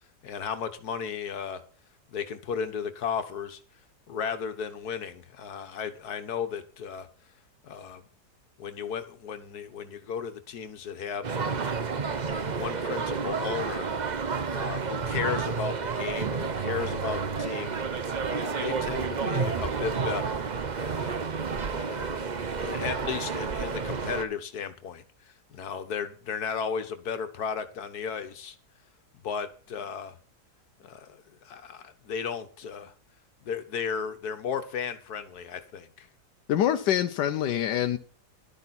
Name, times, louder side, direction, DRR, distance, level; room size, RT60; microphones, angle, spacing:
voice 1, 0.2-1.6 2.1-3.6 4.1-7.1 7.6-8.0 8.6-11.7 12.2-13.9 14.5-17.8 18.3-20.4 20.8-21.2 21.7-28.6 29.2-30.2 30.8-32.9 33.4-36.1, left 6 dB, 65° left, 1.7 m, -35 dB
sound 1, 11.2-24.2, right 5 dB, 40° right, 0.7 m, -30 dB
voice 2, 36.5-38.0, left 10 dB, 85° left, 1.4 m, -25 dB
12.0 x 12.0 x 4.2 m
omnidirectional pair, 1.8 m